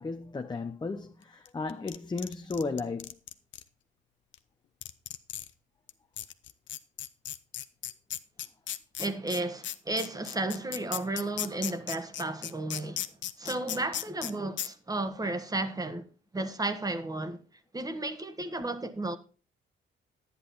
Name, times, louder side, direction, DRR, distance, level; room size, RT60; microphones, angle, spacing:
voice 1, 0.0-3.2, left 3 dB, 20° left, 0.8 m, -34 dB
sound 1, 1.4-3.6 4.3-4.4 4.8-5.5 5.9-6.0 6.2-14.3 14.6-14.7, left 11 dB, 65° left, 0.8 m, -36 dB
voice 2, 9.0-13.0 13.4-16.1 16.3-17.4 17.7-19.2, right 2 dB, 20° right, 1.5 m, -33 dB
11.0 x 9.7 x 4.1 m
cardioid pair, 90°, 20 cm